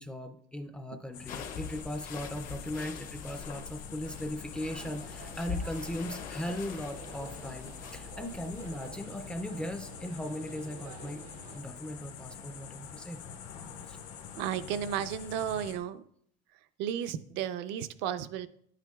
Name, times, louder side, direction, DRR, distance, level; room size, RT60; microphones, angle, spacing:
voice 1, 0.0-11.2 11.5-13.2 13.9-14.0, left 1 dB, 5° left, 7 dB, 0.4 m, -38 dB
sound 1, 1.1-15.8, left 7 dB, 80° left, 1.3 m, -46 dB
sound 2, 1.3-8.9, left 7 dB, 45° left, 0.7 m, -43 dB
sound 3, 4.6-11.6, right 6 dB, 90° right, 0.8 m, -50 dB
voice 2, 14.4-16.0 16.5-18.5, right 9 dB, 70° right, 11 dB, 0.5 m, -34 dB
10.0 x 9.0 x 2.3 m, 0.67 s
cardioid pair, 160°, 19 cm